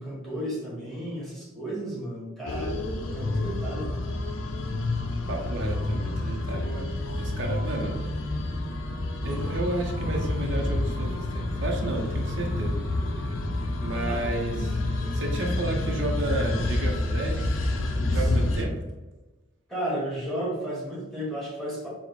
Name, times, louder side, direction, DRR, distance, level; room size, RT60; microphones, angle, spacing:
voice 1, 0.0-3.9 14.1-14.2 18.0-18.3 19.7-21.9, right 1 dB, ahead, -6 dB, 1.2 m, -33 dB
sound 1, 2.5-18.6, left 2 dB, 80° left, 0.5 m, -28 dB
voice 2, 5.3-8.0 9.2-12.7 13.8-17.5 18.1-18.7, right 1 dB, 65° right, 1 dB, 0.6 m, -32 dB
4.5 x 2.1 x 4.1 m, 1.1 s
head